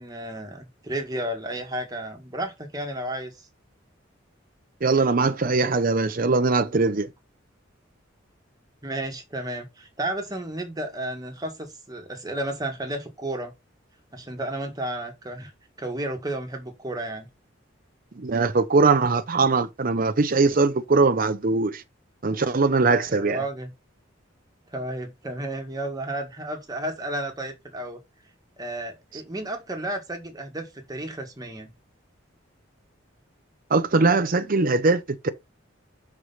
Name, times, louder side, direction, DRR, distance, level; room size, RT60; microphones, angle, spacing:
voice 1, 0.0-3.3 8.8-13.5 14.1-15.5 15.8-17.3 23.1-23.7 24.7-28.0 28.6-31.7, right 1 dB, 20° right, 1.8 m, -32 dB
voice 2, 4.8-7.1 18.2-21.8 22.2-23.4 33.7-35.3, right 3 dB, 45° right, 0.7 m, -21 dB
6.4 x 4.9 x 5.5 m
head